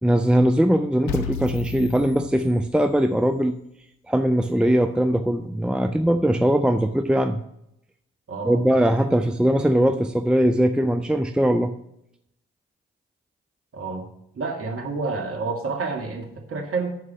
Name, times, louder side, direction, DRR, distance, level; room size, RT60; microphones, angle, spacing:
voice 1, 0.0-3.6 4.1-7.4 8.4-11.7, equal, 5° right, 9 dB, 0.6 m, -20 dB
sound 1, 1.1-3.1, left 6 dB, 75° left, 0.8 m, -34 dB
voice 2, 8.3-8.6 9.1-9.3 13.7-14.1 14.3-17.0, right 4 dB, 45° right, 2 dB, 2.2 m, -29 dB
11.5 x 4.8 x 5.9 m, 0.78 s
hypercardioid pair, 40°, 31 cm